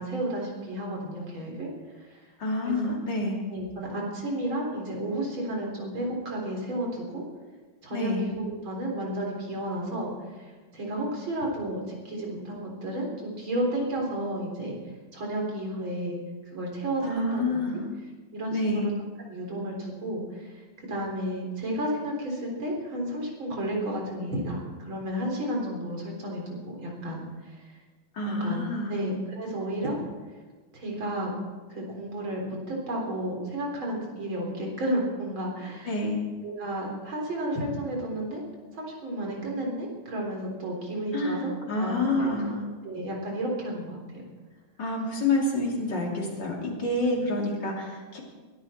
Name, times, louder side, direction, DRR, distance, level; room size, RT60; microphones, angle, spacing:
voice 1, 0.0-1.7 2.0-2.2 2.6-2.9 3.5-7.2 7.8-14.7 15.1-16.2 16.5-17.8 18.3-18.9 19.3-27.6 28.2-28.6 28.9-30.0 30.7-31.3 31.7-36.0 36.4-38.4 38.7-41.5 41.8-42.3 42.8-44.2 47.0-47.4, right 1 dB, 70° right, -1 dB, 4.5 m, -32 dB
voice 2, 2.4-3.4 7.9-8.3 17.0-17.9 18.5-18.9 28.1-29.0 35.9-36.2 41.1-42.6 44.8-48.2, left 2 dB, 60° left, -1 dB, 3.5 m, -28 dB
22.0 x 13.0 x 4.4 m, 1.3 s
omnidirectional pair, 2.2 m